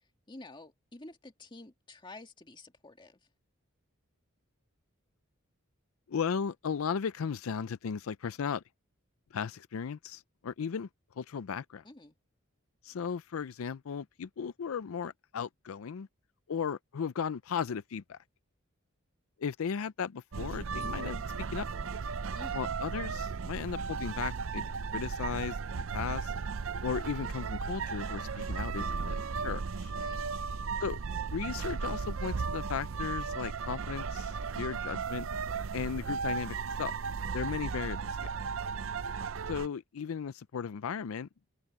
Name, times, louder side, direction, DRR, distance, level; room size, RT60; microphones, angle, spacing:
voice 1, 0.3-3.2 11.8-12.2 22.3-22.6 29.9-30.3, left 2 dB, 20° left, 2.0 m, -50 dB
voice 2, 6.1-8.6 9.3-10.9 11.2-11.8 12.8-16.1 16.5-18.2 19.4-21.2 21.5-21.9 22.5-26.3 26.8-29.9 30.8-31.0 31.3-35.3 35.7-36.9 37.3-38.3 39.5-41.3, left 6 dB, 75° left, 0.4 m, -36 dB
sound 1, 20.3-39.7, right 5 dB, 65° right, 0.5 m, -35 dB
open air
head